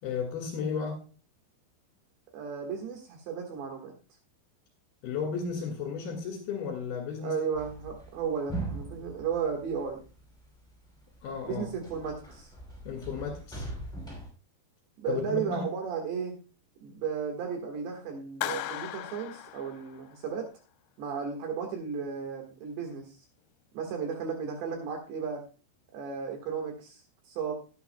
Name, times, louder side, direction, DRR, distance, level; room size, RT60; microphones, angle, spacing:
voice 1, 0.0-1.1 5.0-7.4 11.2-11.6 12.9-13.6 15.1-15.6, left 6 dB, 65° left, 1 dB, 3.5 m, -34 dB
voice 2, 2.3-3.9 7.2-10.0 11.4-12.5 15.0-16.4 16.8-20.5 21.0-23.2 23.7-25.4 25.9-27.0 27.3-27.5, right 6 dB, 75° right, 2 dB, 3.8 m, -34 dB
sound 1, 7.5-10.5 11.0-14.3, right 2 dB, ahead, 4.0 m, -40 dB
Clapping, 18.4-20.3, left 13 dB, 85° left, 2.9 m, -37 dB
17.0 x 9.2 x 2.2 m, 0.34 s
omnidirectional pair, 5.2 m